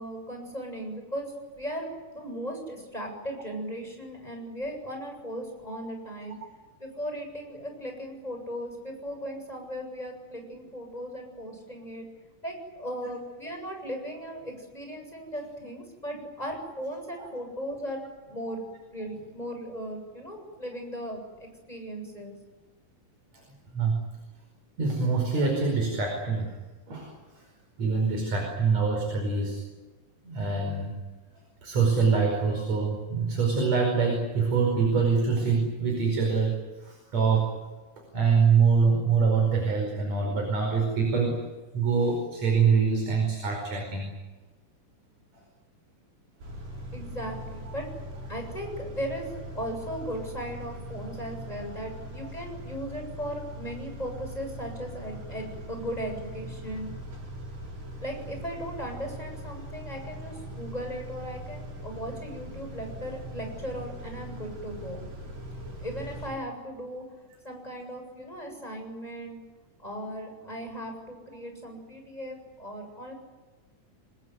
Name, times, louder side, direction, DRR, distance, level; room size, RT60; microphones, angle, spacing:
voice 1, 0.0-6.4 6.8-12.1 12.4-18.6 18.9-22.4 46.9-47.8 48.3-56.9 58.0-65.0 65.8-67.0 67.4-69.4 69.8-73.1, equal, 10° left, 3 dB, 7.7 m, -37 dB
voice 2, 24.8-26.6 26.9-27.4 27.8-29.6 30.2-30.9 31.6-37.6 38.1-41.4 41.7-44.1 52.2-52.3, right 5 dB, 55° right, 1 dB, 6.2 m, -25 dB
Car / Idling / Accelerating revving vroom, 46.4-66.3, equal, 80° right, 8.0 m, -41 dB
26.0 x 20.5 x 9.6 m, 1.2 s
omnidirectional pair, 3.8 m